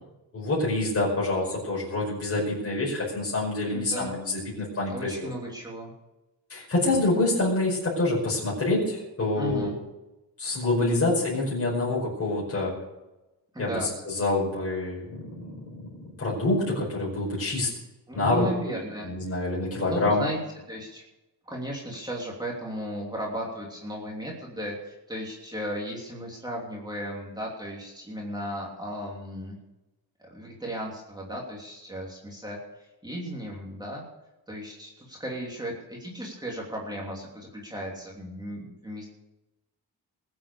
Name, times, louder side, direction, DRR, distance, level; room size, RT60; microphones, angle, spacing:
voice 1, 0.3-5.3 6.5-9.7 10.4-12.7 13.6-15.6 16.2-17.7 18.1-18.8 19.0-20.2, left 2 dB, 35° left, -5 dB, 5.3 m, -26 dB
voice 2, 3.7-4.2 4.9-5.9 9.3-9.8 13.5-13.9 18.1-19.4 19.8-20.4 20.7-21.0 21.5-29.6 30.2-32.6 33.0-34.0 34.5-39.1, equal, 10° right, -3 dB, 3.0 m, -35 dB
21.0 x 8.1 x 6.9 m, 1.0 s
wide cardioid pair, 160°, 40 cm